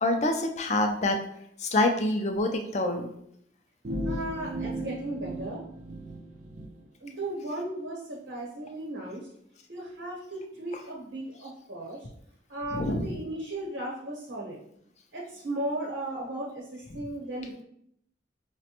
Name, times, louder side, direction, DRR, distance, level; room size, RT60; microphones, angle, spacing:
voice 1, 0.0-1.2 1.7-3.1 12.7-13.1, left 2 dB, 35° left, 5 dB, 0.4 m, -26 dB
sound 1, 3.8-6.7, right 1 dB, 40° right, 0.4 m, -35 dB
voice 2, 4.0-5.6 7.0-9.3 9.7-12.1 12.5-14.6 15.1-17.6, right 1 dB, 65° right, -4 dB, 0.9 m, -36 dB
4.9 x 2.1 x 2.8 m, 0.71 s
head